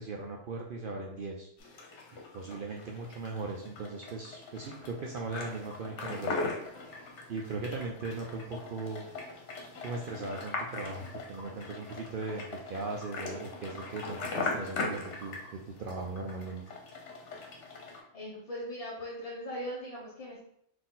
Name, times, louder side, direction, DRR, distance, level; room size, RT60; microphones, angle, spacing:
voice 1, 0.0-1.5 2.3-6.5 7.3-9.1 9.8-16.6, right 3 dB, 60° right, 0 dB, 0.5 m, -38 dB
sound 1, 1.6-18.0, left 3 dB, 65° left, 1.1 m, -40 dB
voice 2, 18.1-20.4, equal, 35° left, -5 dB, 0.6 m, -39 dB
4.2 x 2.7 x 3.8 m, 0.71 s
omnidirectional pair, 1.3 m